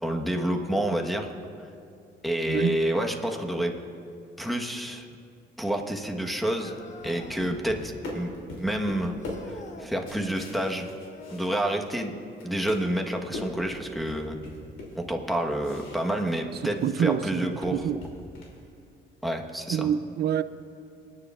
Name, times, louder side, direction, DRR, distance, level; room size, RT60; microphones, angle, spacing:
voice 1, 0.0-1.3 2.2-3.7 4.4-5.1 5.6-9.2 9.5-10.9 11.3-12.1 12.4-14.4 14.9-17.9 19.2-19.9, right 1 dB, ahead, 1.2 m, -29 dB
voice 2, 2.5-2.8 16.8-18.0 19.7-20.4, right 8 dB, 55° right, 0.5 m, -26 dB
sound 1, 6.5-7.6 9.2-9.9 11.0-11.7 13.7-13.8 14.7-14.8 15.7-15.8, left 2 dB, 40° left, 1.0 m, -46 dB
sound 2, 6.7-12.1 12.3-16.9 17.2-18.6, left 1 dB, 85° left, 3.0 m, -41 dB
26.5 x 9.6 x 2.5 m
cardioid pair, 90°, 20 cm